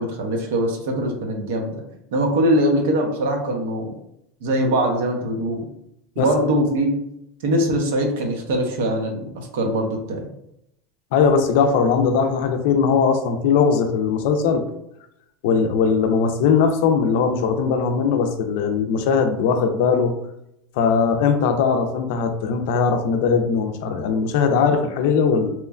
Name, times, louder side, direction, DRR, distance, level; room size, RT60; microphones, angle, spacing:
voice 1, 0.0-1.8 2.1-3.9 4.4-5.7 6.2-7.0 7.4-10.3, right 1 dB, 75° right, 3 dB, 0.6 m, -22 dB
voice 2, 11.1-14.6 15.4-20.1 20.8-25.5, left 5 dB, 65° left, 6 dB, 0.4 m, -19 dB
2.9 x 2.1 x 2.3 m, 0.78 s
supercardioid pair, 160°, 0 cm